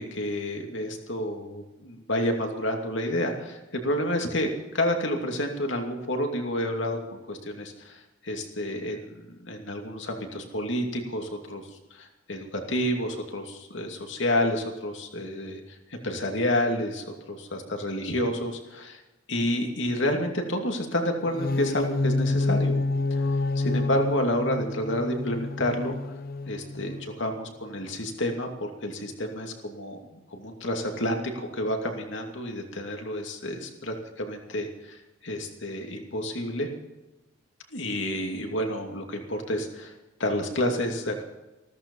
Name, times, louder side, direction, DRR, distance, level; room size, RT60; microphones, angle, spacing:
voice 1, 0.0-7.0 7.3-19.0 19.3-22.7 23.1-26.0 26.5-36.7 37.7-39.9 40.2-41.2, left 1 dB, 70° left, 3 dB, 2.6 m, -29 dB
sound 1, 21.2-27.2, left 2 dB, 45° left, 0.8 m, -28 dB
15.5 x 13.5 x 5.5 m, 1.1 s
head